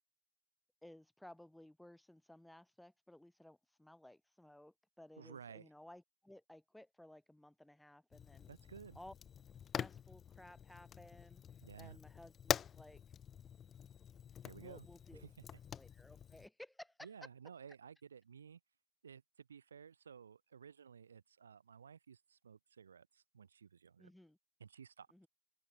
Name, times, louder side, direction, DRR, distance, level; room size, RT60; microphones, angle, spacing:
voice 1, 0.8-8.5 9.0-9.1 9.7-11.4 11.7-13.0 14.5-15.3 15.7-17.3 24.0-24.4 25.1-25.3, left 1 dB, 5° left, 3.6 m, -58 dB
voice 2, 5.2-5.7 8.5-9.0 11.6-12.0 14.4-14.8 15.1-15.3 17.0-18.6 19.0-24.1 24.6-25.1, right 7 dB, 70° right, 1.7 m, -55 dB
Fire, 8.1-16.5, left 8 dB, 25° left, 0.3 m, -45 dB
open air
figure-of-eight pair, 90°, 0 cm